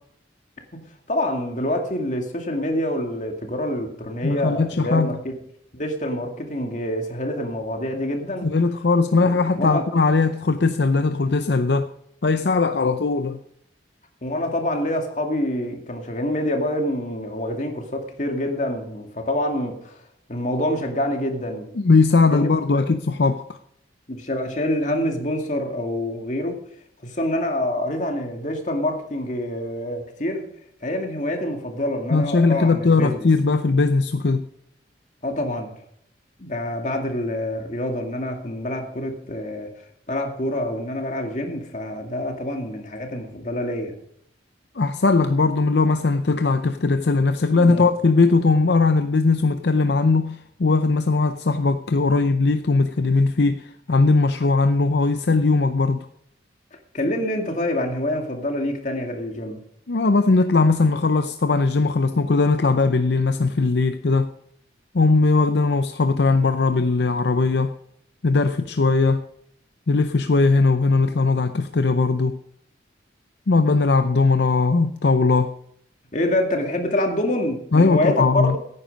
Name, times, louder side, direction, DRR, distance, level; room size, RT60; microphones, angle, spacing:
voice 1, 1.1-5.3 5.7-8.5 9.2-9.3 9.6-9.8 14.2-19.9 20.3-21.7 22.3-22.9 24.1-26.6 27.0-30.5 30.8-33.3 35.2-35.7 36.4-39.7 40.1-43.9 47.5-47.9 56.9-59.6 76.1-78.6, left 1 dB, 40° left, 2.2 m, -26 dB
voice 2, 4.2-5.2 8.4-11.9 12.2-13.4 21.8-23.4 32.1-34.5 44.8-56.1 59.9-64.3 64.9-67.7 68.2-69.2 69.9-72.4 73.5-75.5 77.7-78.6, left 3 dB, 65° left, 0.6 m, -19 dB
15.5 x 9.5 x 5.3 m
head